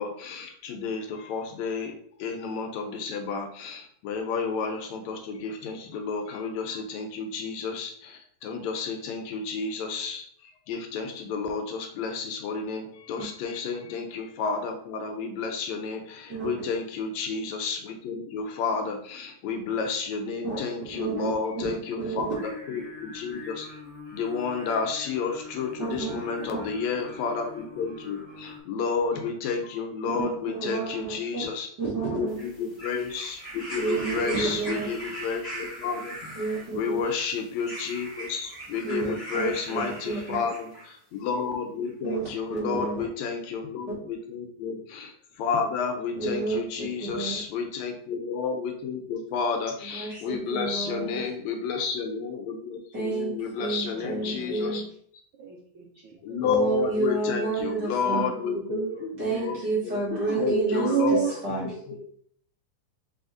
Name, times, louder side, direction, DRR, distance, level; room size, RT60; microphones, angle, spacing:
voice 1, 0.0-10.3 10.7-23.7 24.1-31.7 32.1-36.2 36.7-45.1 45.4-54.8 56.2-58.8 59.3-61.2 61.6-62.0, left 5 dB, 80° left, 4 dB, 1.8 m, -31 dB
voice 2, 20.9-21.8 22.0-22.3 25.8-26.1 26.5-26.6 30.1-31.4 31.8-32.4 33.8-34.9 36.3-37.0 38.8-40.4 42.0-43.0 46.2-47.4 49.8-51.2 52.9-54.9 56.4-58.2 59.2-61.2 61.4-61.6, right 4 dB, 50° right, -6 dB, 1.3 m, -31 dB
Singing, 22.3-28.6, left 3 dB, 15° right, 1.3 m, -43 dB
sound 1, 32.3-40.9 41.8-41.9, right 1 dB, 35° left, 0.9 m, -40 dB
voice 3, 50.6-51.3 53.9-54.8 55.4-56.4 58.1-59.5 60.1-62.0, right 5 dB, 80° right, -2 dB, 1.1 m, -32 dB
4.1 x 3.4 x 3.7 m, 0.62 s
omnidirectional pair, 3.4 m